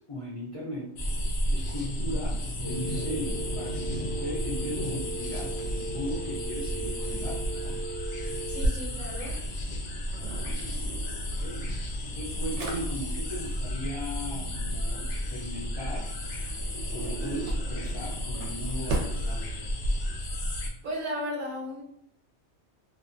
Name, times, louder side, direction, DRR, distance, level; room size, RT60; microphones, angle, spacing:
voice 1, 0.1-0.9 1.5-7.8 11.4-11.7 12.0-16.1 16.8-19.8, equal, 50° left, -5 dB, 0.4 m, -38 dB
sound 1, 1.0-20.7, equal, 80° left, 0.9 m, -32 dB
Telephone, 2.6-8.6, right 3 dB, 20° right, 0.7 m, -38 dB
voice 2, 8.5-9.4 20.8-21.8, equal, 50° right, -1 dB, 0.8 m, -34 dB
Drawer open or close, 10.0-20.0, right 1 dB, 80° right, 0.9 m, -38 dB
2.5 x 2.2 x 2.5 m, 0.71 s
omnidirectional pair, 1.2 m